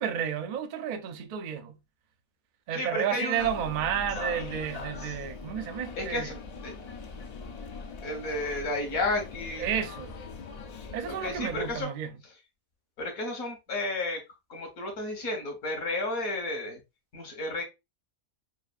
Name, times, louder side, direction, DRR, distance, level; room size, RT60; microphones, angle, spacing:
voice 1, 0.0-1.8 2.7-6.3 9.6-10.2 10.9-12.1, right 9 dB, 60° right, 0.5 m, -31 dB
voice 2, 2.7-3.5 6.0-6.3 6.6-6.7 8.0-9.7 11.1-11.9 13.0-14.2 14.5-16.8 17.1-17.6, left 2 dB, 75° left, 1.9 m, -32 dB
sound 1, 3.4-11.8, left 4 dB, 55° left, 0.4 m, -41 dB
5.9 x 2.5 x 2.4 m
omnidirectional pair, 1.5 m